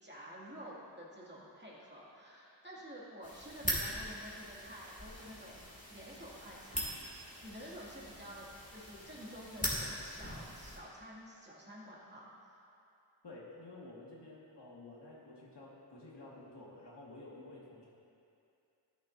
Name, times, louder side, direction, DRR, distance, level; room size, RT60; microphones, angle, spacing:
voice 1, 0.0-5.6 5.9-12.3, equal, 25° right, -7 dB, 2.3 m, -50 dB
sound 1, 3.2-10.8, equal, 15° left, 2.4 m, -41 dB
voice 2, 13.2-17.9, left 2 dB, 70° left, -5 dB, 2.0 m, -51 dB
13.0 x 10.5 x 2.7 m, 2.6 s
wide cardioid pair, 60°, 44 cm